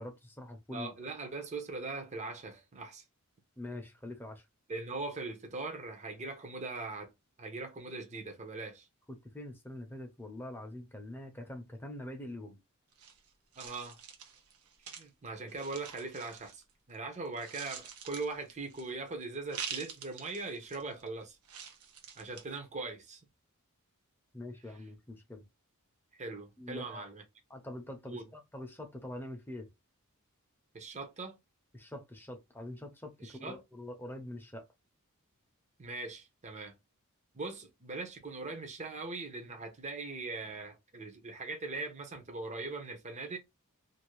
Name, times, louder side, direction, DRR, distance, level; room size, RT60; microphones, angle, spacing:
voice 1, 0.0-1.1 3.6-4.4 9.1-12.6 24.3-25.4 26.6-27.0 27.5-29.7 31.7-34.6, left 1 dB, 10° left, 0.8 m, -44 dB
voice 2, 0.7-3.0 4.7-7.1 7.4-8.9 13.6-14.0 14.8-21.4 22.2-23.2 26.2-27.2 28.0-28.3 30.7-31.4 33.2-33.6 35.8-36.7 37.3-43.4, right 3 dB, 30° right, 0.7 m, -41 dB
sound 1, 12.9-16.9 17.2-19.1 19.5-21.1 21.4-22.6, right 7 dB, 80° right, 0.8 m, -46 dB
2.7 x 2.6 x 3.0 m
head